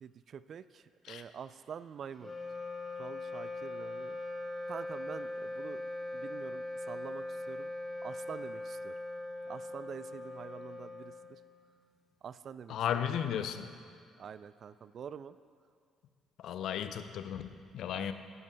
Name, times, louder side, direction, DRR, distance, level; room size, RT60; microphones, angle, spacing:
voice 1, 0.0-2.3 3.0-4.2 4.7-5.8 6.1-7.7 8.0-8.9 9.5-11.4 12.2-13.0 14.2-15.4 17.9-18.1, right 7 dB, 50° right, 15 dB, 0.3 m, -46 dB
Wind instrument woodwind instrument, 2.1-11.7, left 2 dB, 10° left, 2.1 m, -41 dB
voice 2, 12.7-13.7 16.4-18.1, left 9 dB, 60° left, 10 dB, 0.5 m, -35 dB
17.0 x 11.0 x 2.3 m, 2.2 s
figure-of-eight pair, 45°, 0 cm